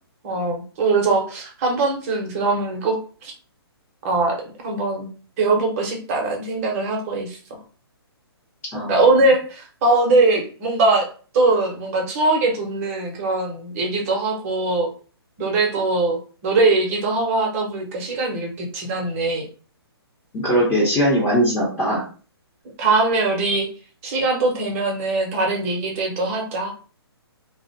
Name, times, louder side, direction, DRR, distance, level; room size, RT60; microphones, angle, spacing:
voice 1, 0.2-3.0 3.2-3.3 4.0-4.4 4.6-5.1 5.4-7.4 8.9-11.1 11.3-14.9 15.4-19.5 22.8-23.7 24.0-26.7, right 3 dB, 35° right, 1 dB, 0.7 m, -21 dB
voice 2, 8.7-9.2 20.3-22.0, equal, 15° left, -5 dB, 0.8 m, -20 dB
2.4 x 2.0 x 2.7 m, 0.39 s
hypercardioid pair, 140°, 14 cm